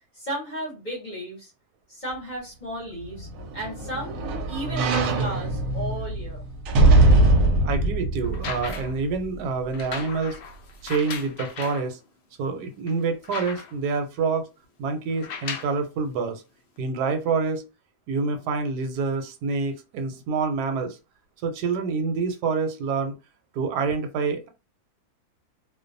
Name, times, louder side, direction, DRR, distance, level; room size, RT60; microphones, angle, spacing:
voice 1, 0.1-1.5 1.9-4.2 4.5-6.4, right 1 dB, 35° left, 0.8 m, -34 dB
sound 1, 3.0-9.4 9.8-9.9, right 2 dB, 70° right, 0.9 m, -22 dB
voice 2, 7.5-10.4 10.8-12.0 12.4-14.5 14.8-16.4 16.8-17.6 18.1-21.0 21.4-23.1 23.5-24.5, right 4 dB, 85° right, 1.2 m, -27 dB
sound 2, 8.2-9.0 9.7-11.9 12.4-12.5 12.9-13.9 15.1-15.8 16.8-16.9, left 6 dB, 80° left, 0.5 m, -37 dB
2.5 x 2.2 x 2.5 m
omnidirectional pair, 1.7 m